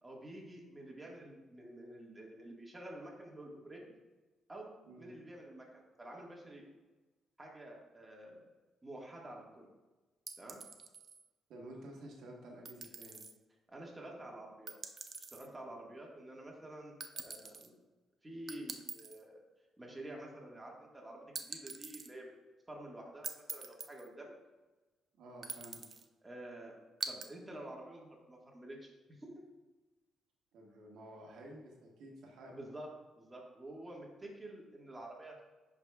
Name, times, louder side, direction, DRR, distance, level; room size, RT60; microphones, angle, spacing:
voice 1, 0.0-3.8 4.5-6.6 7.4-8.4 8.8-9.7 10.4-10.6 13.7-14.8 15.3-17.7 18.2-19.4 19.8-22.3 22.7-24.3 26.2-26.7 27.1-28.9 29.2-29.5 32.5-32.9 33.2-35.4, right 1 dB, 15° right, -2 dB, 1.7 m, -49 dB
sound 1, 10.3-11.2 12.7-13.3 14.7-15.5 17.0-17.7 18.5-19.2 21.4-22.1 23.2-24.1 25.4-26.1 27.0-27.3, right 5 dB, 40° right, 0.6 m, -44 dB
voice 2, 11.5-13.2 25.1-25.8 30.5-32.5, right 1 dB, 80° right, -1 dB, 1.4 m, -51 dB
10.0 x 4.9 x 2.4 m, 1.2 s
cardioid pair, 90°, 0 cm